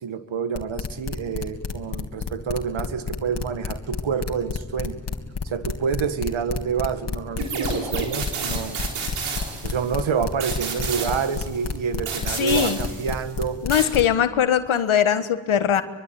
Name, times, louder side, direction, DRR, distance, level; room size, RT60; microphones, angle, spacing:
voice 1, 0.0-5.0 5.4-8.8 9.6-13.6, right 6 dB, 65° right, 10 dB, 1.9 m, -28 dB
sound 1, 0.5-14.1, left 5 dB, 55° left, 3.1 m, -29 dB
sound 2, 7.4-10.0 10.4-11.7 12.1-13.3 13.7-13.9, right 5 dB, 90° right, 4.1 m, -31 dB
voice 2, 12.3-12.8 13.6-15.8, left 9 dB, 70° left, 10 dB, 1.6 m, -21 dB
24.0 x 24.0 x 9.4 m, 1.3 s
supercardioid pair, 45°, 50 cm